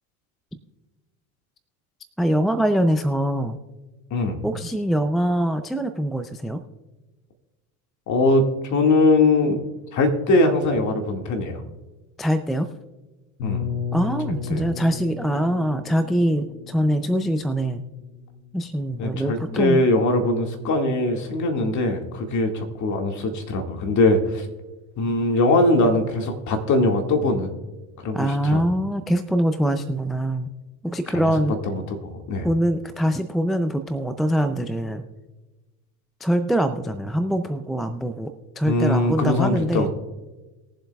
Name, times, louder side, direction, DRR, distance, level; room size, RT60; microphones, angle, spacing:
voice 1, 2.2-3.6 4.4-6.6 12.2-12.7 13.9-17.8 18.5-19.8 28.1-30.5 30.8-31.5 32.4-35.0 36.2-39.9, equal, ahead, 10 dB, 0.4 m, -23 dB
voice 2, 4.1-4.4 8.1-9.6 9.9-11.6 13.4-13.7 14.5-14.6 19.0-24.5 25.0-27.5 28.0-28.6 31.2-31.3 31.7-32.5 38.7-39.9, left 2 dB, 40° left, 4 dB, 2.0 m, -21 dB
sound 1, 13.4-19.2, left 7 dB, 80° left, 3.6 m, -34 dB
21.0 x 7.6 x 2.3 m, 1.2 s
hypercardioid pair, 100°, 44 cm